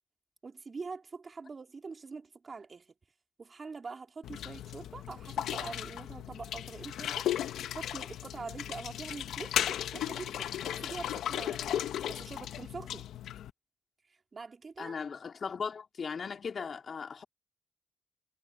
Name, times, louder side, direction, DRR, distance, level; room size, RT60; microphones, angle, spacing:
voice 1, 0.4-2.9 3.4-7.3 7.6-11.8 12.1-13.1 14.3-14.9, right 4 dB, 45° right, 3.4 m, -44 dB
sound 1, 4.2-13.5, left 11 dB, 80° left, 1.2 m, -36 dB
voice 2, 14.8-17.2, left 6 dB, 55° left, 3.2 m, -38 dB
supercardioid pair, 50°, 0 cm